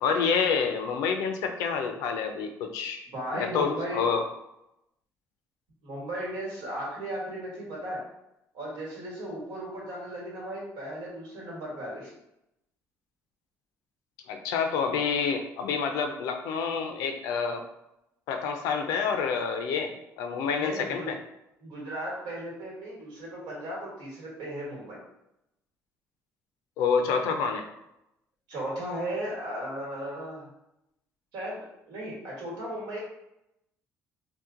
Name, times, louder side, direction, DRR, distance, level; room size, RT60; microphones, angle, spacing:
voice 1, 0.0-3.0 3.3-4.2 14.3-17.6 18.3-21.2 26.8-27.7, left 6 dB, 90° left, 5 dB, 0.5 m, -28 dB
voice 2, 3.1-4.0 5.8-8.0 8.5-12.1 20.6-21.2 21.6-25.0 28.5-30.5 31.3-33.0, right 1 dB, 85° right, -4 dB, 1.4 m, -36 dB
2.9 x 2.2 x 3.7 m, 0.86 s
cardioid pair, 105°, 6 cm